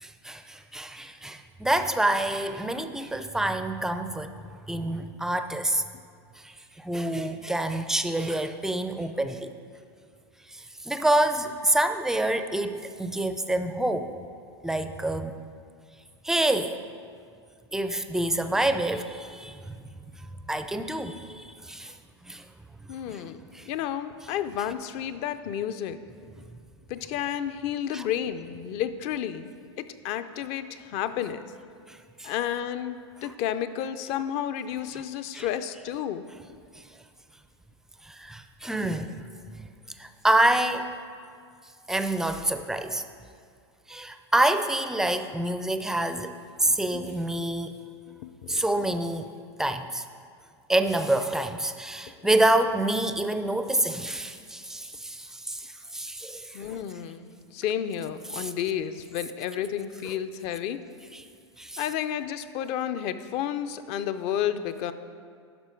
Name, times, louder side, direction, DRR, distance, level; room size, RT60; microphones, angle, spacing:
voice 1, 0.0-4.4 4.7-5.8 6.4-9.5 10.5-14.1 14.6-15.3 16.2-16.8 17.7-19.8 20.5-21.9 22.2-22.4 23.1-23.2 23.5-23.7 27.9-28.0 31.9-32.3 35.3-35.5 38.0-39.2 40.0-40.9 41.9-43.0 43.9-47.8 48.5-49.3 49.6-50.0 50.7-56.6 58.3-58.5 61.1-61.2 61.6-61.8, right 1 dB, 5° right, 9 dB, 0.4 m, -27 dB
voice 2, 22.9-23.4 23.7-26.0 26.9-29.5 29.8-31.5 32.2-36.2 46.9-47.1 48.2-48.6 52.2-52.3 56.5-60.8 61.8-64.9, left 10 dB, 45° left, 11 dB, 0.5 m, -31 dB
12.0 x 5.5 x 4.5 m, 2.2 s
hypercardioid pair, 115°, 15 cm